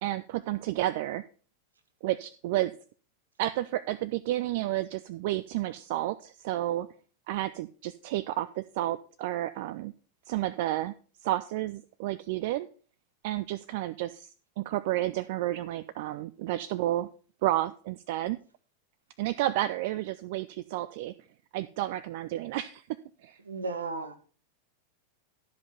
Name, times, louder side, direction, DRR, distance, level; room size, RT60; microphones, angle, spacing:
voice 1, 0.0-1.2 2.0-2.7 3.4-6.9 7.3-9.9 10.3-10.9 11.2-12.7 13.2-17.1 17.4-18.4 19.2-21.1 21.5-22.9 23.2-23.4, right 15 dB, 50° right, 16 dB, 0.4 m, -31 dB
voice 2, 23.4-24.2, right 3 dB, 75° right, 8 dB, 1.5 m, -34 dB
12.5 x 5.3 x 5.6 m, 0.40 s
figure-of-eight pair, 90°, 0 cm